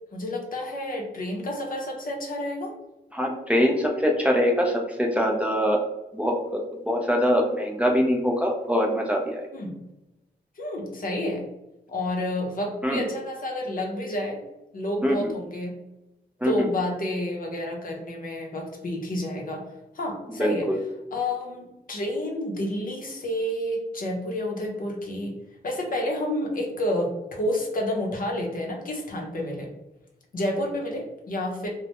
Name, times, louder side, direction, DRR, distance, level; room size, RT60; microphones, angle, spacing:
voice 1, 0.1-2.7 9.5-9.7 10.6-11.4 11.9-14.4 14.7-15.8 16.4-19.6 19.9-20.7 21.1-25.3 25.6-29.7 30.3-31.7, left 1 dB, 55° left, 0 dB, 0.6 m, -29 dB
voice 2, 3.1-5.8 6.1-9.5 12.8-13.0 15.0-15.3 16.4-16.7 20.4-20.8, equal, 5° right, 0 dB, 0.4 m, -23 dB
2.1 x 2.1 x 2.8 m, 0.96 s
cardioid pair, 60°, 17 cm